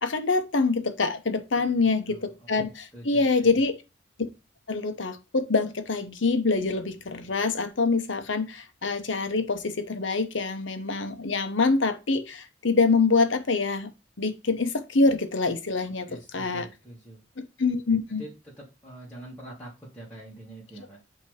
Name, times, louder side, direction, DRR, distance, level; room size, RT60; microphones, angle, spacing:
voice 1, 0.0-3.7 4.7-13.9 14.2-16.1 16.3-16.7 17.6-18.2, left 3 dB, 75° left, 9 dB, 1.0 m, -25 dB
voice 2, 1.5-2.5 2.9-3.7 16.0-17.2 18.2-18.3 18.6-21.0, right 1 dB, 5° left, -7 dB, 1.8 m, -45 dB
8.4 x 3.0 x 4.9 m, 0.28 s
head